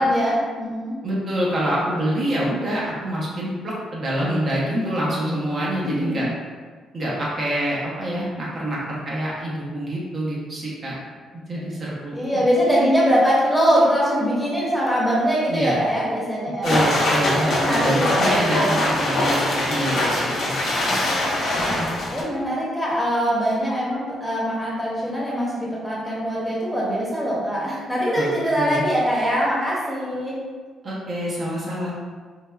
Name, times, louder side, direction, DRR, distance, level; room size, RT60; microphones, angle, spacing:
voice 1, 0.0-1.0 5.8-6.2 12.1-18.8 22.1-30.4, equal, ahead, -7 dB, 0.9 m, -22 dB
voice 2, 1.0-6.3 6.9-11.0 11.5-12.1 15.5-15.8 16.6-20.5 20.8-21.0 28.2-28.3 28.5-28.8 30.8-31.9, right 1 dB, 45° right, -6 dB, 0.7 m, -26 dB
sound 1, 16.6-22.2, left 1 dB, 70° left, 0.7 m, -22 dB
3.3 x 2.1 x 2.2 m, 1.5 s
cardioid pair, 90°, 0 cm